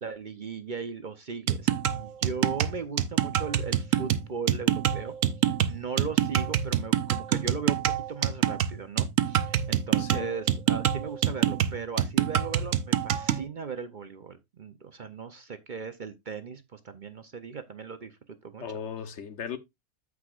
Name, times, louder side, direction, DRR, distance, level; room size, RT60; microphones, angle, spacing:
voice 1, 0.0-5.2 5.7-18.6, right 5 dB, 45° right, 0.7 m, -38 dB
sound 1, 1.5-13.5, right 11 dB, 85° right, 1.1 m, -26 dB
voice 2, 10.0-10.3 18.6-19.6, left 7 dB, 65° left, 1.1 m, -37 dB
14.5 x 4.8 x 2.4 m
omnidirectional pair, 1.3 m